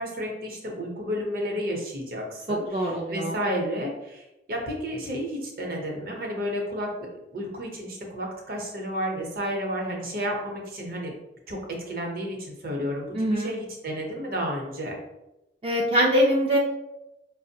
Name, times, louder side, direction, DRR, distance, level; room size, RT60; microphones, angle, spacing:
voice 1, 0.0-11.1 11.5-15.0, equal, 50° right, 0 dB, 0.7 m, -32 dB
voice 2, 2.5-3.4 13.1-13.5 15.6-16.6, equal, 30° right, -3 dB, 0.3 m, -23 dB
5.0 x 2.0 x 2.7 m, 0.94 s
head